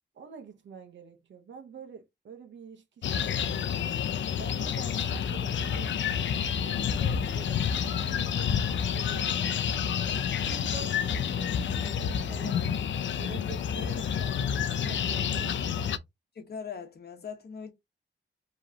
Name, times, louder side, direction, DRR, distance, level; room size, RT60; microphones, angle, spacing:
voice 1, 0.1-3.8 4.3-6.3 6.6-9.8 10.4-12.8 13.2-15.6, right 5 dB, 75° right, 0.9 m, -46 dB
sound 1, 3.0-16.0, left 8 dB, 80° left, 0.5 m, -29 dB
voice 2, 16.3-17.7, left 6 dB, 55° left, 1.2 m, -40 dB
4.8 x 3.1 x 2.8 m
wide cardioid pair, 95°, 19 cm